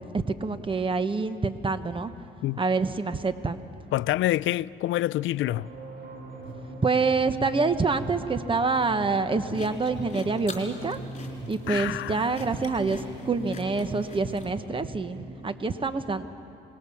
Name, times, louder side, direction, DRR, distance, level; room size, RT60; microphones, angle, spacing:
voice 1, 0.0-2.1 2.6-3.6 6.8-11.0 11.5-16.2, right 4 dB, 25° right, 1.1 m, -26 dB
voice 2, 3.9-5.7 11.7-12.3, left 15 dB, 75° left, 0.4 m, -27 dB
sound 1, 5.4-15.2, right 1 dB, 55° right, 4.1 m, -42 dB
sound 2, 6.4-7.6 7.9-8.1 8.4-12.5 12.8-13.0 13.3-13.5 13.9-14.1, right 3 dB, 80° right, 5.7 m, -46 dB
sound 3, 9.5-14.6, left 4 dB, 35° left, 4.0 m, -43 dB
26.0 x 20.0 x 7.2 m
cardioid pair, 90°, 20 cm